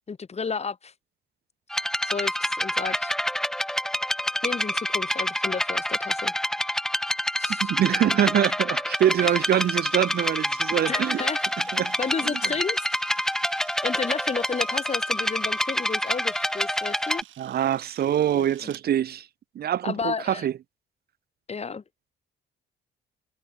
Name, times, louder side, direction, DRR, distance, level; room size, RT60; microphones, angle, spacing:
voice 1, 0.1-0.9 2.0-3.1 4.4-6.3 7.4-7.7 9.2-9.4 10.9-11.5 12.0-12.9 13.8-17.2 18.3-18.7 19.8-20.5 21.5-21.8, left 5 dB, 35° left, 1.7 m, -32 dB
sound 1, 1.7-17.2, equal, ahead, 0.7 m, -27 dB
voice 2, 7.6-11.3 11.7-11.9 12.2-12.3 17.4-19.3 19.6-20.5, right 10 dB, 50° right, 0.6 m, -24 dB
Camera, 8.9-18.8, right 13 dB, 80° right, 4.7 m, -51 dB
cardioid pair, 90°, 20 cm